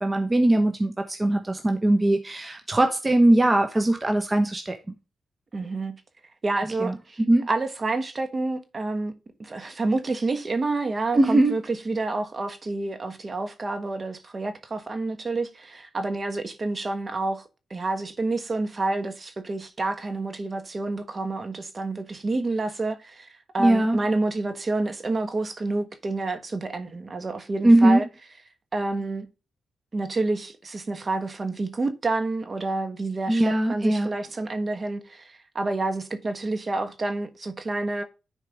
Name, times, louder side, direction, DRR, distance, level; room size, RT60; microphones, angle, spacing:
voice 1, 0.0-4.9 6.8-6.9 7.3-7.5 11.1-11.6 23.6-24.0 27.6-28.0 33.3-34.1, right 1 dB, 25° right, 1.1 m, -20 dB
voice 2, 5.5-6.0 6.4-7.2 7.5-28.0 28.7-29.3 29.9-38.0, right 2 dB, 40° right, 1.4 m, -29 dB
10.5 x 4.7 x 3.5 m
cardioid pair, 60°, 0 cm